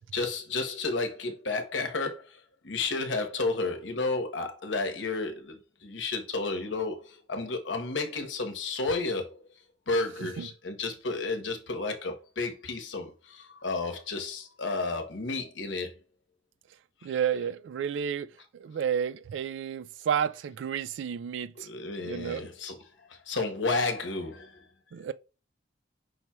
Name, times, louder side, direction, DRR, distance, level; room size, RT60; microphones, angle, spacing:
voice 1, 0.1-9.4 9.9-15.9 21.6-22.8 23.1-24.6, left 3 dB, 80° left, 1.0 m, -32 dB
voice 2, 17.0-21.7 22.0-22.5 24.9-25.1, right 8 dB, 75° right, 0.3 m, -31 dB
5.4 x 4.3 x 2.3 m
head